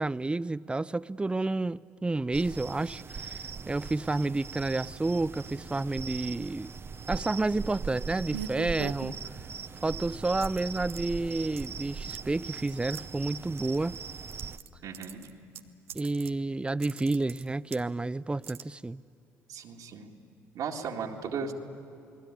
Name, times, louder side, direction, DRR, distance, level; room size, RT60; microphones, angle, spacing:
voice 1, 0.0-6.7 7.1-9.2 9.8-14.0 15.9-19.0, right 2 dB, 15° right, 0.5 m, -30 dB
sound 1, 2.3-14.6, right 5 dB, 35° right, 0.9 m, -40 dB
sound 2, 8.3-9.6 10.4-11.0 11.6-11.8 12.1-12.2 12.5-13.0 13.6-14.7 14.9-16.4 16.7-17.9 18.4-18.6, right 10 dB, 90° right, 0.7 m, -42 dB
voice 2, 14.8-15.3 19.5-20.1 20.5-21.5, right 6 dB, 60° right, 2.1 m, -36 dB
29.0 x 20.5 x 9.9 m
hypercardioid pair, 55°, 7 cm